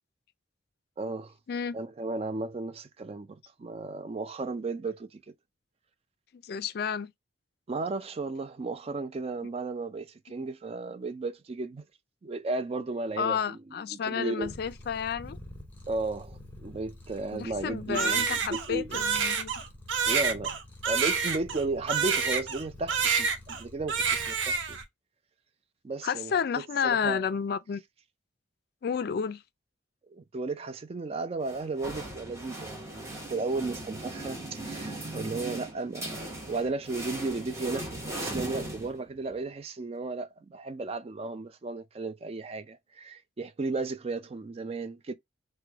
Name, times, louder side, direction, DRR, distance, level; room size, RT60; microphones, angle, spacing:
voice 1, 1.0-1.3 1.7-5.2 7.7-11.8 12.2-14.5 15.9-19.0 20.0-20.5 20.8-24.8 25.8-27.3 30.1-45.1, right 3 dB, 30° right, 0.3 m, -34 dB
voice 2, 6.3-7.1 13.2-15.4 17.3-19.5 26.0-27.8 28.8-29.4, left 7 dB, 55° left, 0.3 m, -31 dB
Purr, 14.4-24.8, left 1 dB, 10° left, 0.8 m, -48 dB
Crying sobbing, 17.9-22.6 22.9-23.6 23.9-24.8, right 6 dB, 85° right, 0.7 m, -28 dB
sound 1, 31.4-39.4, right 1 dB, 15° right, 0.9 m, -39 dB
3.2 x 2.2 x 3.4 m
head